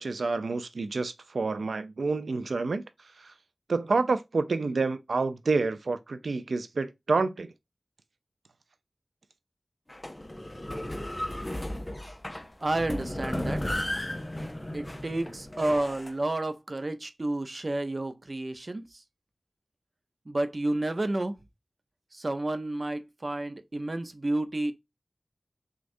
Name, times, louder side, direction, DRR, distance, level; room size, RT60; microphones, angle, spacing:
voice 1, 0.0-3.3 3.7-7.5, right 3 dB, 90° right, 0.5 m, -28 dB
sound 1, 9.9-16.1, left 1 dB, 20° left, 0.6 m, -35 dB
voice 2, 12.6-13.8 14.7-19.0 20.3-21.3 22.1-24.7, right 2 dB, 45° right, 0.6 m, -30 dB
6.3 x 2.4 x 2.6 m
wide cardioid pair, 60°, 0 cm